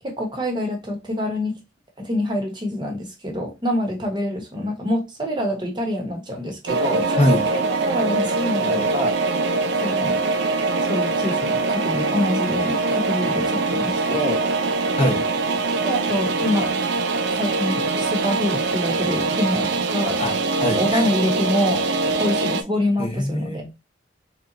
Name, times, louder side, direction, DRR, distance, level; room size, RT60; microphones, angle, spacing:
voice 1, 0.0-1.6 2.0-9.1 9.8-10.2 10.9-14.4 15.8-16.7 17.3-20.2 20.7-21.8 22.2-23.7, left 1 dB, 25° right, 0.9 m, -26 dB
sound 1, 6.7-22.6, right 3 dB, 65° right, 0.5 m, -23 dB
voice 2, 20.2-21.0 23.0-23.7, left 1 dB, 30° left, 0.8 m, -22 dB
3.3 x 2.9 x 3.8 m
head